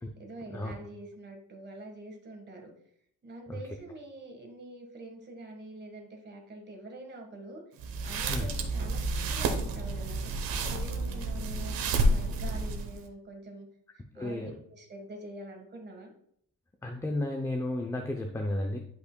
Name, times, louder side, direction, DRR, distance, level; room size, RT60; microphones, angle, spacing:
voice 1, 0.2-2.7 3.2-7.6 8.0-11.7 12.1-13.7 14.0-16.1, right 1 dB, 30° right, 2 dB, 1.4 m, -45 dB
sound 1, 7.8-13.0, right 2 dB, 85° right, 1.0 m, -30 dB
voice 2, 14.2-14.5 16.8-18.8, left 1 dB, 10° left, 3 dB, 0.5 m, -33 dB
10.5 x 5.5 x 2.2 m, 0.70 s
cardioid pair, 145°, 34 cm